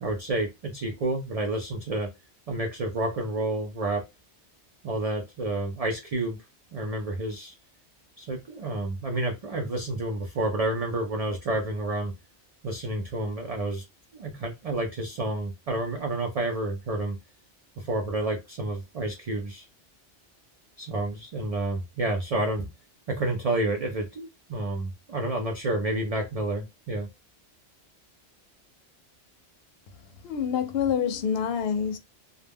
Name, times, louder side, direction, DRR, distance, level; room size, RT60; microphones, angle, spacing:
voice 1, 0.0-2.1 2.5-4.0 4.8-6.4 6.7-7.5 8.2-12.1 12.6-13.8 14.1-17.2 17.8-19.7 20.8-22.7 23.1-27.1, right 2 dB, 55° right, 0.4 m, -29 dB
voice 2, 30.2-32.0, left 7 dB, 65° left, 0.7 m, -27 dB
2.3 x 2.1 x 3.4 m
omnidirectional pair, 1.2 m